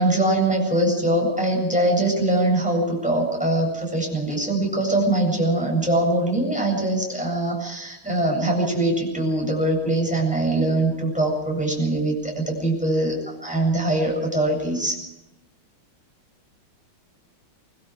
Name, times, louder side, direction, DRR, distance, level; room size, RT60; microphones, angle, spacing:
voice 1, 0.0-15.0, right 1 dB, 5° right, -1 dB, 7.8 m, -22 dB
24.0 x 24.0 x 5.0 m, 0.92 s
omnidirectional pair, 2.4 m